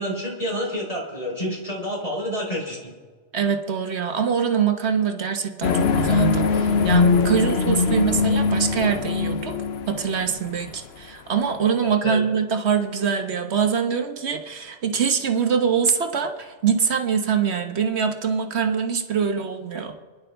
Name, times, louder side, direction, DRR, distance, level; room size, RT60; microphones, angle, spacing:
voice 1, 0.0-2.8 11.8-12.2, equal, 30° left, -2 dB, 4.0 m, -28 dB
voice 2, 3.3-9.5 9.9-20.0, right 7 dB, 65° right, 6 dB, 1.4 m, -24 dB
sound 1, 5.6-10.8, left 5 dB, 65° left, 1.0 m, -21 dB
29.0 x 10.5 x 3.5 m, 1.5 s
omnidirectional pair, 1.2 m